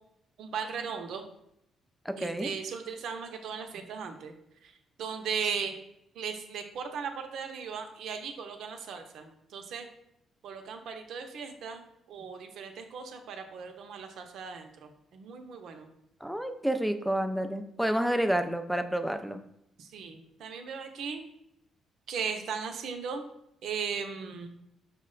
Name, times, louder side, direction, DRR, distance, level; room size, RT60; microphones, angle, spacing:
voice 1, 0.4-1.2 2.2-4.3 4.6-4.7 5.0-5.8 6.2-9.9 10.4-15.9 19.8-21.2 22.1-23.2 23.6-24.5, right 6 dB, 75° right, 6 dB, 0.6 m, -37 dB
voice 2, 2.1-2.5 16.2-19.4, right 1 dB, ahead, 8 dB, 0.4 m, -29 dB
5.6 x 2.1 x 3.8 m, 0.78 s
cardioid pair, 90°, 0 cm